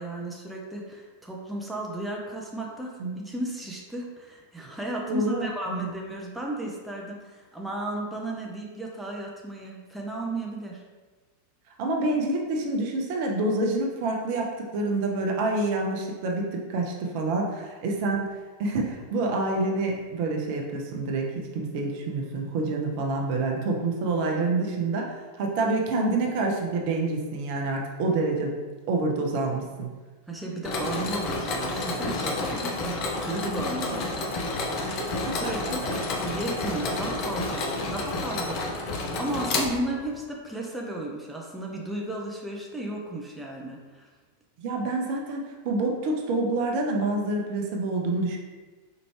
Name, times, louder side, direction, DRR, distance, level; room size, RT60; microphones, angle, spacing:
voice 1, 0.0-2.9 3.2-10.8 30.3-33.0 33.2-34.3 34.8-35.8 36.2-44.1, right 1 dB, 5° right, -2 dB, 0.5 m, -34 dB
voice 2, 5.1-5.9 11.8-18.3 18.6-28.6 28.9-29.9 32.8-32.9 35.3-35.4 35.6-35.9 44.6-48.4, right 2 dB, 45° right, 0 dB, 0.6 m, -27 dB
Mechanisms, 30.6-40.2, left 2 dB, 40° left, 0.5 m, -30 dB
4.5 x 2.5 x 3.1 m, 1.3 s
figure-of-eight pair, 90°, 0 cm